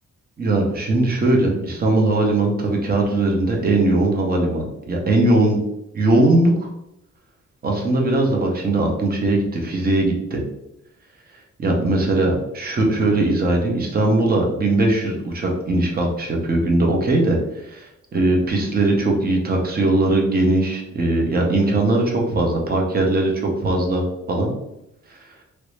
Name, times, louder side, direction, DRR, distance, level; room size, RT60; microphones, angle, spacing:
voice 1, 0.4-5.6 5.9-6.7 7.6-10.4 11.6-17.4 17.7-24.5, right 2 dB, 30° right, 1 dB, 0.6 m, -20 dB
3.0 x 2.6 x 3.1 m, 0.85 s
wide cardioid pair, 165°, 30 cm